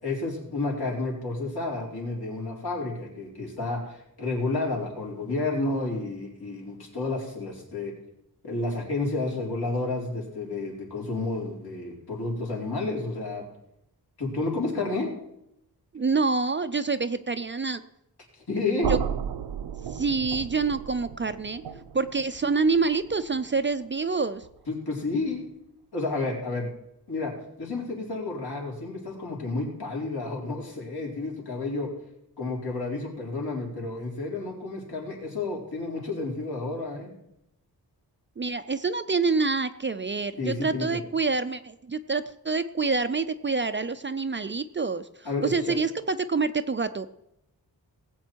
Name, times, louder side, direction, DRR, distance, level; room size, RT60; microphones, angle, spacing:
voice 1, 0.0-7.9 8.4-13.4 14.2-15.1 18.4-19.0 21.7-21.8 24.7-25.5 25.9-26.7 27.1-27.3 27.6-31.9 32.4-37.1 40.4-41.0 45.2-45.8, left 3 dB, 70° left, -2 dB, 4.0 m, -31 dB
voice 2, 15.9-17.8 18.9-19.0 19.9-21.6 21.9-24.4 38.4-47.1, right 4 dB, 30° right, 11 dB, 0.4 m, -27 dB
sound 1, 18.8-24.7, right 8 dB, 90° right, 0.7 m, -34 dB
19.0 x 8.3 x 4.6 m, 0.81 s
wide cardioid pair, 145°, 39 cm